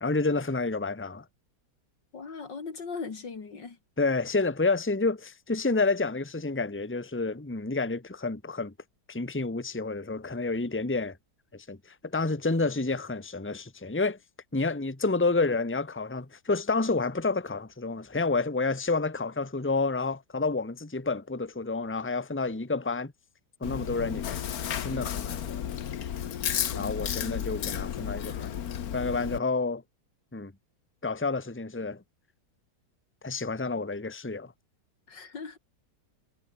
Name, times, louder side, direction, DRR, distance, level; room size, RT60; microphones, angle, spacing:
voice 1, 0.0-1.2 4.0-8.7 9.1-11.2 11.5-11.8 12.0-14.2 14.5-23.1 23.6-24.4 24.8-25.6 26.7-28.6 28.9-29.8 30.3-30.5 31.0-32.0 33.2-34.5, left 3 dB, 5° left, 1.5 m, -29 dB
voice 2, 2.1-3.8 26.7-26.9 35.1-35.6, left 5 dB, 80° left, 3.5 m, -39 dB
Chewing mastication, 23.6-29.4, left 9 dB, 60° left, 1.5 m, -33 dB
omnidirectional pair, 1.9 m